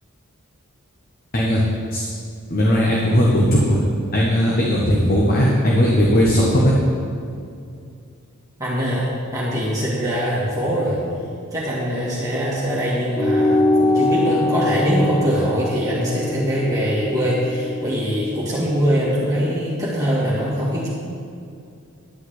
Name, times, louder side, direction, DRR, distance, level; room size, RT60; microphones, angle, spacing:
voice 1, 2.5-3.8 4.1-6.8, equal, 45° left, -3 dB, 1.3 m, -17 dB
voice 2, 8.6-11.0 11.5-20.9, equal, 15° right, -7 dB, 2.0 m, -22 dB
sound 1, 13.2-18.0, left 2 dB, 10° left, 0.3 m, -22 dB
11.5 x 5.7 x 8.1 m, 2.4 s
head